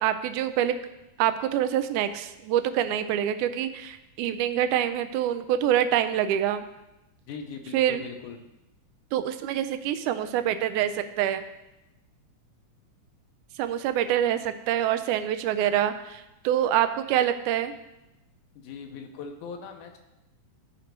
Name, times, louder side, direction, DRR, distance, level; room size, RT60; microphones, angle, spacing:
voice 1, 0.0-0.7 1.2-6.6 7.7-8.0 9.1-11.4 13.6-17.8, right 11 dB, 80° right, 10 dB, 2.0 m, -26 dB
voice 2, 7.3-8.5 18.6-20.0, left 5 dB, 80° left, 4 dB, 2.3 m, -40 dB
13.5 x 5.1 x 4.5 m, 0.95 s
omnidirectional pair, 3.6 m